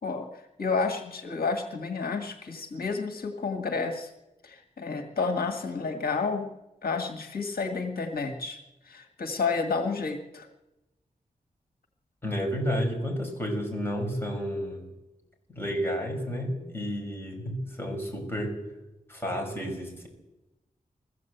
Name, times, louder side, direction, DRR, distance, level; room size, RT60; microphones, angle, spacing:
voice 1, 0.0-4.1 4.4-6.5 6.8-8.6 8.8-10.5, left 4 dB, 90° left, 4 dB, 1.8 m, -30 dB
voice 2, 12.2-14.8 15.5-18.6 19.1-20.1, equal, 15° left, 1 dB, 6.0 m, -31 dB
21.0 x 15.0 x 8.1 m, 1.0 s
wide cardioid pair, 110°, 15 cm